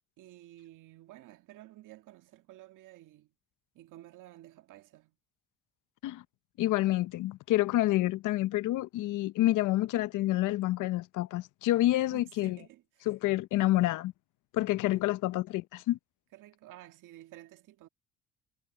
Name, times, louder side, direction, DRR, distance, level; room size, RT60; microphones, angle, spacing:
voice 1, 0.2-3.3 3.7-5.2 12.1-13.1 14.9-15.1 16.3-17.9, right 15 dB, 75° right, 2.0 m, -52 dB
voice 2, 6.6-12.6 13.1-14.1 14.5-16.0, left 16 dB, 75° left, 0.8 m, -28 dB
cardioid pair, 85°, 31 cm